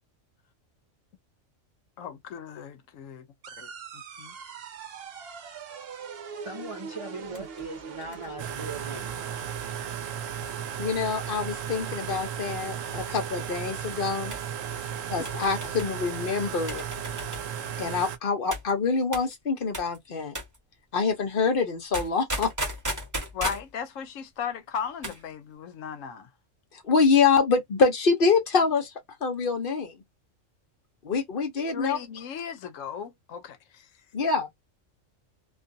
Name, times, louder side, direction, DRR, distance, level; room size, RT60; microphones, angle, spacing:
voice 1, 2.0-4.3 15.2-15.4 23.3-26.3 31.7-33.9, left 7 dB, 80° left, 1.0 m, -37 dB
sound 1, 3.4-8.4, right 6 dB, 55° right, 0.8 m, -42 dB
voice 2, 6.4-9.3, right 3 dB, 35° right, 0.5 m, -39 dB
sound 2, 7.3-10.7 11.5-12.0 12.2-12.3 12.8-13.1 14.3-14.5 15.2-15.9 16.7-17.5 18.5-18.7 19.1-19.3 19.7-20.0 20.3-20.6 21.9-23.7 24.8-25.2 25.5-25.6, equal, 15° right, 1.0 m, -36 dB
sound 3, 8.4-18.2, right 9 dB, 80° right, 0.9 m, -35 dB
voice 3, 10.8-14.3 15.1-16.8 17.8-20.4 20.9-22.5 26.7-30.0 31.0-32.0 34.1-34.6, left 5 dB, 50° left, 0.9 m, -25 dB
2.5 x 2.4 x 2.5 m
omnidirectional pair, 1.3 m